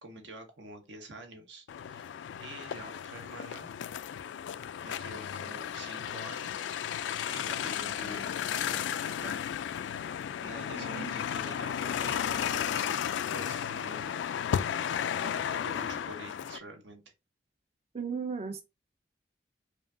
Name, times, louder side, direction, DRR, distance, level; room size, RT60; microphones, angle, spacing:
voice 1, 0.0-3.7 4.8-9.4 10.4-13.0 13.3-14.1 15.2-17.0, right 1 dB, 85° right, 1.2 m, -47 dB
sound 1, 1.7-16.6, left 9 dB, 90° left, 0.3 m, -34 dB
voice 2, 10.8-11.1 17.9-18.6, right 5 dB, 35° right, 0.4 m, -36 dB
4.9 x 2.6 x 2.5 m
head